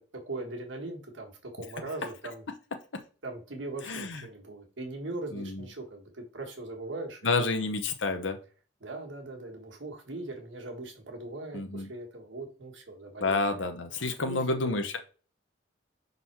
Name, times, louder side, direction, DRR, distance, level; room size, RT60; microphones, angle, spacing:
voice 1, 0.2-2.4 3.2-7.6 8.8-13.6 14.2-14.7, right 2 dB, 80° right, 3 dB, 1.6 m, -40 dB
voice 2, 3.8-4.2 5.3-5.7 7.2-8.4 11.5-11.9 13.2-15.0, left 3 dB, 80° left, 6 dB, 0.8 m, -29 dB
5.6 x 4.0 x 4.4 m, 0.38 s
head